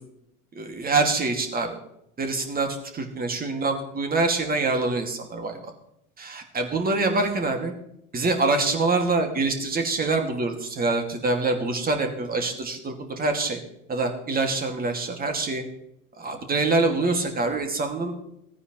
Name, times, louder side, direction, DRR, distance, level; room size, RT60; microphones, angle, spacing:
voice 1, 0.5-1.8 2.2-5.7 6.2-7.7 8.1-13.6 13.9-15.6 16.2-18.2, right 3 dB, 20° right, 4 dB, 2.3 m, -25 dB
17.5 x 9.7 x 3.2 m, 0.77 s
figure-of-eight pair, 85°, 44 cm